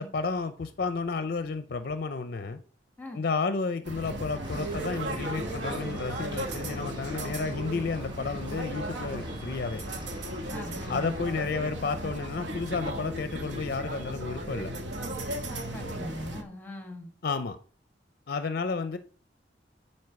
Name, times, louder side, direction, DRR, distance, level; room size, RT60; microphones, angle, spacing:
voice 1, 0.0-2.6 3.1-9.8 10.9-14.7 17.2-17.6 18.3-19.0, left 4 dB, 55° left, 0.5 m, -32 dB
sound 1, 3.8-16.4, right 1 dB, 75° right, 1.2 m, -36 dB
sound 2, 4.4-11.5, right 1 dB, 25° right, 1.5 m, -44 dB
voice 2, 10.5-11.1 15.7-17.1, left 1 dB, 10° left, 1.3 m, -41 dB
9.6 x 4.4 x 4.7 m
head